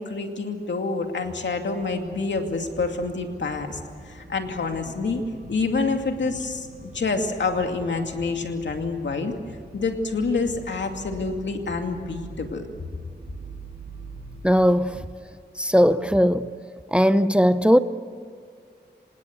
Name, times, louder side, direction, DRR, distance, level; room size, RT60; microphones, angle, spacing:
voice 1, 0.0-3.8 4.1-5.2 5.5-9.3 9.7-12.6, left 4 dB, 85° left, 2.5 m, -27 dB
sound 1, 1.1-15.1, right 3 dB, 60° right, 6.1 m, -44 dB
voice 2, 14.4-15.1 15.6-16.5 16.9-17.8, equal, 5° right, 0.7 m, -18 dB
26.5 x 18.5 x 8.2 m
wide cardioid pair, 85°, 18 cm